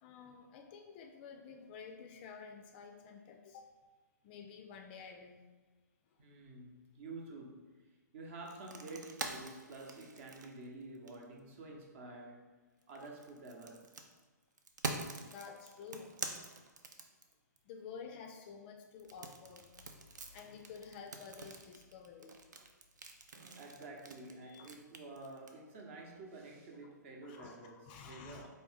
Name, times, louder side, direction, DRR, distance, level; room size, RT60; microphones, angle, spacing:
voice 1, 0.0-3.7 4.2-5.4 15.2-16.1 17.7-19.7 20.3-22.4 24.4-24.7 26.8-26.9 27.2-28.5, left 6 dB, 30° left, 4 dB, 0.3 m, -51 dB
voice 2, 6.2-7.9 8.1-12.5 12.9-13.9 23.6-28.5, right 2 dB, 40° right, 0 dB, 0.8 m, -49 dB
sound 1, 8.4-11.4 12.8-17.6 19.0-25.5, right 3 dB, 70° right, 0.5 m, -45 dB
4.1 x 2.8 x 3.5 m, 1.3 s
figure-of-eight pair, 125°, 10 cm